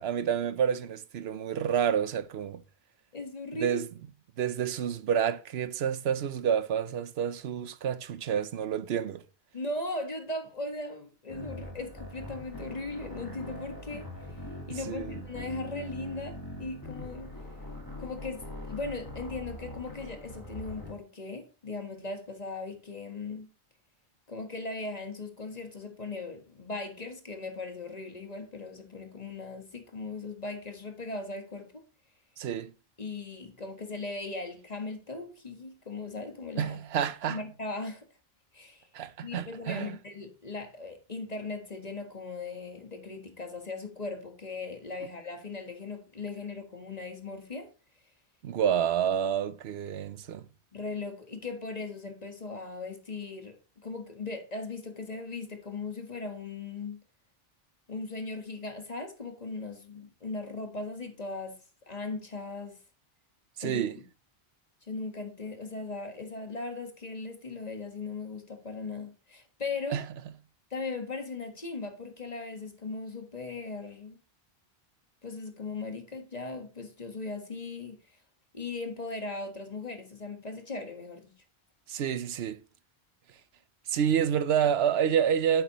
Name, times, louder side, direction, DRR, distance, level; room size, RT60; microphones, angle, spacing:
voice 1, 0.0-2.6 3.5-3.9 4.4-9.2 14.7-15.2 32.4-32.7 36.6-37.4 38.9-40.0 48.4-50.5 63.6-64.0 69.9-70.1 81.9-82.6 83.9-85.6, right 8 dB, 85° right, 0.9 m, -29 dB
voice 2, 3.1-3.8 9.5-14.4 14.7-17.3 18.0-23.5 24.3-31.8 33.0-36.8 37.2-38.1 38.5-38.9 39.2-47.7 50.7-53.5 53.8-57.0 57.9-61.5 61.9-62.8 63.6-63.8 64.8-70.0 70.7-74.2 75.2-77.9 78.5-81.3, left 3 dB, 40° left, 1.7 m, -38 dB
sound 1, 11.3-20.9, left 1 dB, 20° left, 1.8 m, -42 dB
9.3 x 7.5 x 3.0 m
omnidirectional pair, 1.0 m